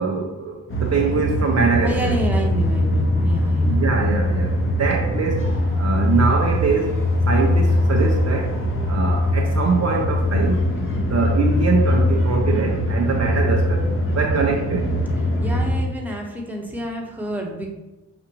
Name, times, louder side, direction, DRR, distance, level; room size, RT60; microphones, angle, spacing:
voice 1, 0.0-2.1 3.6-4.5 4.8-5.4 5.8-6.9 7.3-8.5 8.9-10.6 11.1-13.9 14.2-14.9, right 5 dB, 45° right, 0 dB, 0.7 m, -23 dB
sound 1, 0.7-15.8, left 1 dB, 35° left, 1.1 m, -21 dB
voice 2, 1.8-3.9 10.7-11.1 15.2-17.7, equal, 5° right, -1 dB, 1.1 m, -29 dB
5.9 x 2.5 x 3.0 m, 1.1 s
supercardioid pair, 45°, 38 cm